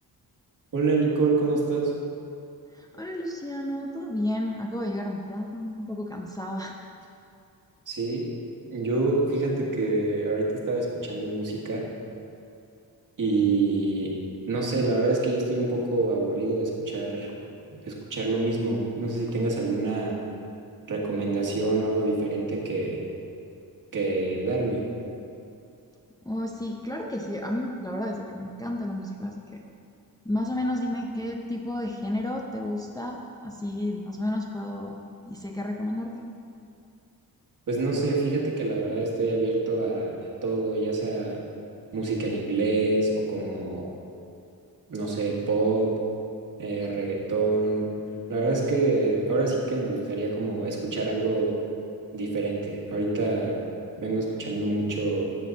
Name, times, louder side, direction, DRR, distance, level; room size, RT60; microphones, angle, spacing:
voice 1, 0.7-1.9 7.9-8.3 8.6-11.9 13.2-14.1 14.5-17.3 17.9-20.2 20.9-23.0 23.9-24.8 37.7-41.4 41.9-43.8 44.9-46.0 46.6-47.9 48.3-51.6 52.1-53.6 54.0-55.2, right 3 dB, 55° right, -2 dB, 1.9 m, -26 dB
voice 2, 2.7-6.8 26.3-29.6 30.2-35.0 35.3-36.3, left 1 dB, 10° left, 0 dB, 0.5 m, -31 dB
13.5 x 7.9 x 4.0 m, 2.6 s
wide cardioid pair, 180°, 38 cm